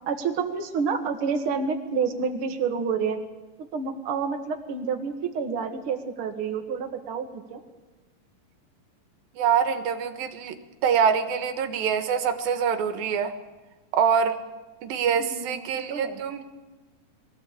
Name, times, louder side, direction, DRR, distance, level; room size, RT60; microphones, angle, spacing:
voice 1, 0.1-3.2 3.6-7.6 15.2-16.2, right 5 dB, 45° right, 4 dB, 2.2 m, -29 dB
voice 2, 9.3-10.6 10.8-13.3 13.9-14.4 14.8-16.4, right 7 dB, 85° right, 8 dB, 3.2 m, -24 dB
22.5 x 15.5 x 8.4 m, 1.2 s
omnidirectional pair, 4.1 m